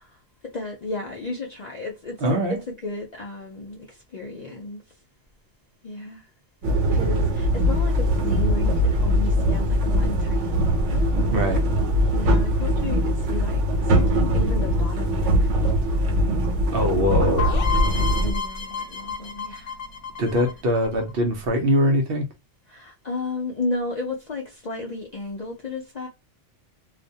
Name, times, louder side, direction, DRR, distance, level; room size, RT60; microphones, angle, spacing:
voice 1, 0.0-5.0 5.8-6.3 6.9-11.4 12.1-15.9 17.7-19.8 22.7-26.1, left 2 dB, 55° left, 0.4 m, -34 dB
voice 2, 2.2-2.6 11.3-11.6 16.7-17.5 20.2-22.3, equal, 60° right, 0.7 m, -22 dB
sound 1, 6.6-18.3, equal, 80° right, 1.0 m, -21 dB
Meow, 7.5-21.5, left 1 dB, 35° right, 1.1 m, -35 dB
sound 2, 17.4-21.1, left 6 dB, 75° left, 1.0 m, -30 dB
2.4 x 2.1 x 2.6 m
omnidirectional pair, 1.2 m